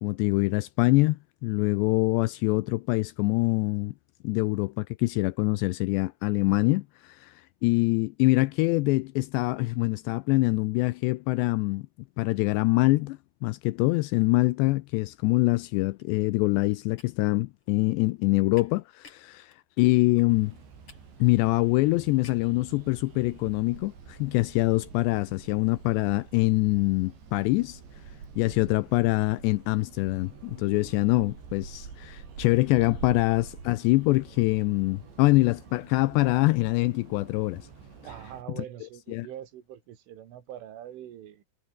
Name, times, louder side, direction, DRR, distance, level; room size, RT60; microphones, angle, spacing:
voice 1, 0.0-3.9 4.2-7.3 7.6-11.9 12.2-20.5 21.2-27.8 28.4-37.7 39.1-39.3, left 21 dB, 85° left, 2.5 m, -24 dB
sound 1, 15.8-22.6, left 5 dB, 30° left, 3.6 m, -58 dB
sound 2, 20.3-38.4, right 6 dB, 65° right, 7.7 m, -47 dB
voice 2, 38.0-41.4, right 11 dB, 85° right, 4.9 m, -43 dB
omnidirectional pair, 5.5 m